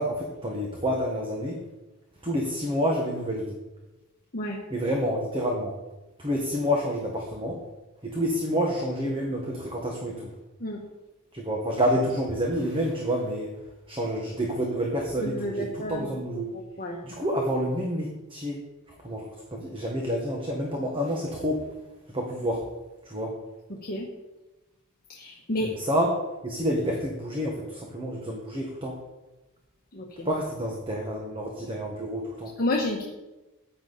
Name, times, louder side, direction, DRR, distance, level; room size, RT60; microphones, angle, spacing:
voice 1, 0.0-1.6 2.2-3.6 4.7-5.8 6.2-7.6 8.0-10.3 11.3-13.5 13.9-16.5 17.0-18.6 19.0-21.7 22.1-22.7 23.0-23.4 25.6-29.0 30.2-32.5, equal, 25° right, -1 dB, 1.6 m, -28 dB
voice 2, 15.2-16.2 16.5-17.0 23.8-24.1 25.1-25.7 29.9-30.3 32.6-33.0, left 1 dB, 45° left, -1 dB, 1.4 m, -30 dB
14.5 x 9.9 x 4.2 m, 1.1 s
head